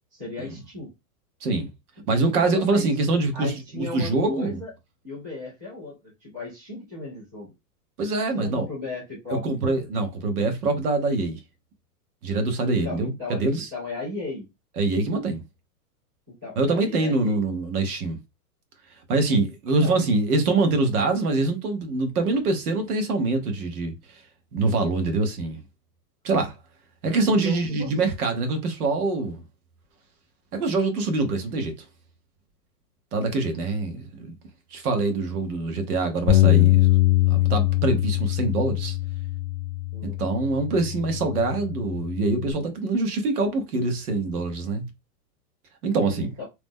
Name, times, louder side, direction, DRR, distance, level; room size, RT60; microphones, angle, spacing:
voice 1, 0.1-0.9 2.3-2.9 3.3-4.7 5.0-7.5 8.3-9.7 12.7-14.5 16.4-17.4 19.8-20.0 27.3-27.9 39.9-40.2 46.4-46.5, left 3 dB, 10° right, 0.4 m, -36 dB
voice 2, 2.1-4.6 8.0-8.6 9.3-11.4 12.2-13.7 14.8-15.4 16.6-18.2 19.1-24.2 24.5-25.6 26.2-26.6 27.0-29.4 30.5-31.8 33.1-34.3 34.7-36.9 37.3-39.0 40.0-44.9 45.8-46.3, right 3 dB, 65° right, 1.1 m, -24 dB
Bass guitar, 36.3-42.5, left 16 dB, 40° left, 0.5 m, -22 dB
2.9 x 2.1 x 3.5 m
supercardioid pair, 170°, 47 cm